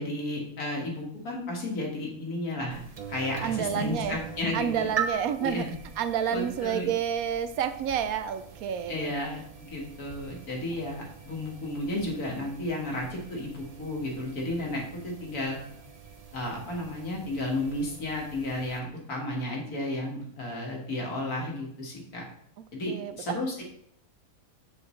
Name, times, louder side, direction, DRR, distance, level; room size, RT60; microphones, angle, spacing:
voice 1, 0.0-2.8 3.1-4.9 5.4-5.7 6.3-6.9 8.9-15.6 16.3-22.2 22.7-23.6, left 1 dB, 75° left, -1 dB, 2.2 m, -33 dB
sound 1, 2.7-18.8, right 6 dB, 40° right, 0.5 m, -42 dB
voice 2, 3.4-4.2 4.5-5.7 6.0-9.1 22.9-23.2, right 8 dB, 75° right, 11 dB, 1.0 m, -29 dB
6.9 x 6.8 x 3.2 m, 0.71 s
omnidirectional pair, 1.6 m